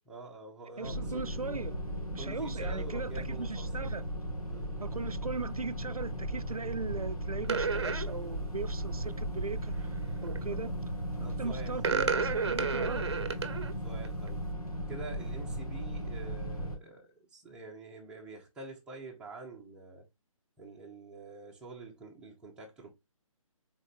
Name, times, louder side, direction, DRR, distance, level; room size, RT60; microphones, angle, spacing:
voice 1, 0.0-1.2 2.2-3.7 4.5-4.7 10.5-10.6 11.2-11.8 13.8-14.4 14.9-20.1 20.6-22.9, right 3 dB, 5° right, 0.8 m, -47 dB
sound 1, 0.8-16.8, equal, 85° left, 1.7 m, -36 dB
voice 2, 0.8-1.8 2.1-4.1 4.8-9.9 10.2-10.7 11.2-13.1, right 4 dB, 90° right, 0.4 m, -38 dB
sound 2, 7.4-8.1 10.1-10.4 11.8-13.7 14.0-14.3, right 5 dB, 50° right, 0.7 m, -31 dB
5.2 x 4.0 x 2.5 m
figure-of-eight pair, 140°, 18 cm